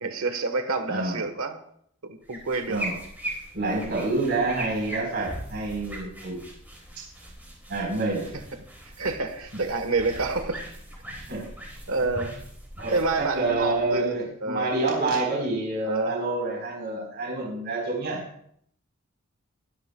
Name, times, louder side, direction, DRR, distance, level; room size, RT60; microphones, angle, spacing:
voice 1, 0.0-1.6 2.0-2.9 3.8-3.9 9.0-10.6 11.9-12.4 12.9-14.1 14.4-14.7 15.8-16.2, right 3 dB, 85° right, 7 dB, 1.2 m, -28 dB
voice 2, 0.9-1.2 2.7-3.0 3.5-6.4 7.0-7.1 7.7-8.3 11.2-11.5 12.8-18.2, right 2 dB, 50° right, -2 dB, 4.1 m, -28 dB
sound 1, 2.2-14.2, right 1 dB, 10° right, 3.9 m, -40 dB
23.0 x 11.5 x 2.3 m, 0.67 s
head